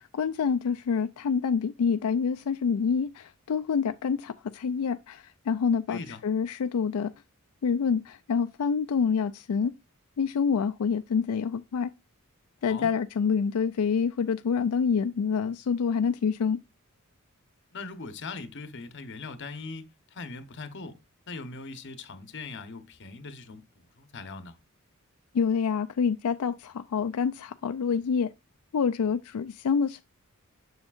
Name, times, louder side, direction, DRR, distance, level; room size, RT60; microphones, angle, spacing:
voice 1, 0.0-7.1 7.6-9.7 10.2-11.9 12.6-16.6 25.3-28.3 28.7-30.0, left 6 dB, 85° left, 0.4 m, -27 dB
voice 2, 5.9-6.2 12.7-12.9 17.7-19.9 20.1-21.0 21.3-23.6 24.0-24.6, left 3 dB, 55° left, 1.0 m, -40 dB
7.1 x 6.5 x 2.4 m
head